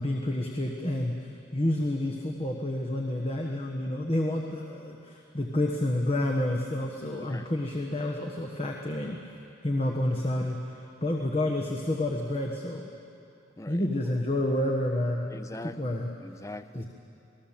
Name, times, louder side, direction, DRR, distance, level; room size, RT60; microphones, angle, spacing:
voice 1, 0.0-9.2 9.6-12.9 13.7-15.4 15.8-16.1 16.7-16.8, left 1 dB, 30° left, 0 dB, 1.4 m, -29 dB
voice 2, 7.2-7.5 13.6-13.8 15.3-16.8, left 2 dB, 15° left, 10 dB, 0.5 m, -42 dB
27.5 x 19.5 x 7.4 m, 2.8 s
head